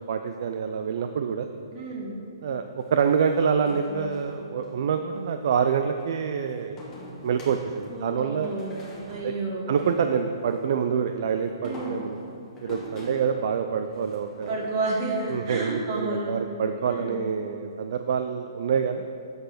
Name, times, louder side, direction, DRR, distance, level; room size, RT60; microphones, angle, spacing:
voice 1, 0.0-1.5 2.4-6.8 7.2-8.5 9.2-9.3 9.7-12.2 12.6-14.5 15.3-19.1, right 7 dB, 60° right, 7 dB, 0.4 m, -26 dB
voice 2, 1.7-2.1 7.9-8.7 9.1-9.7 11.3-12.0 14.5-16.3 16.8-17.2, right 2 dB, 35° right, -2 dB, 1.6 m, -31 dB
sound 1, 2.8-4.7 6.8-10.6 11.4-15.0, left 2 dB, 20° left, 1.3 m, -43 dB
7.8 x 4.0 x 6.5 m, 2.7 s
hypercardioid pair, 150°, 3 cm